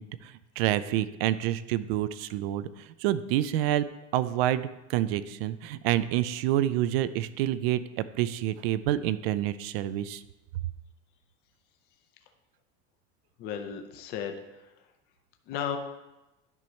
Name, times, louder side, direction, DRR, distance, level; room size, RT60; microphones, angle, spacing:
voice 1, 0.0-3.9 4.1-10.2, right 13 dB, 70° right, 14 dB, 0.5 m, -28 dB
voice 2, 13.4-14.7 15.5-15.8, left 8 dB, 30° left, 5 dB, 0.5 m, -35 dB
10.5 x 5.6 x 3.2 m, 1.0 s
cardioid pair, 175°, 32 cm